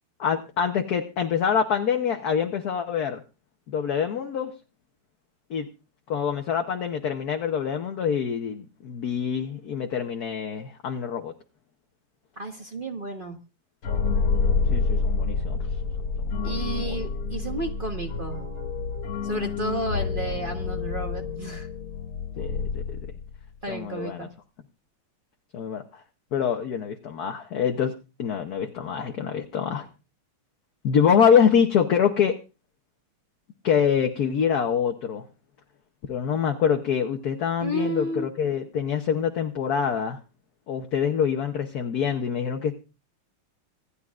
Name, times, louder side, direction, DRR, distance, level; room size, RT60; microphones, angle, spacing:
voice 1, 0.2-3.2 3.7-4.5 5.5-5.7 6.1-11.3 14.7-15.6 16.2-17.0 22.4-23.0 23.7-24.3 25.5-25.8 26.3-29.9 30.8-32.4 33.6-35.2 36.1-40.2 40.7-42.7, left 7 dB, 55° left, 4 dB, 1.2 m, -25 dB
voice 2, 12.4-13.4 16.4-18.5 19.2-21.7 23.6-24.3 37.6-38.3, right 1 dB, 35° right, 4 dB, 1.0 m, -32 dB
sound 1, 13.8-23.5, left 4 dB, 75° left, 2.6 m, -28 dB
26.0 x 10.0 x 2.5 m, 0.32 s
omnidirectional pair, 2.4 m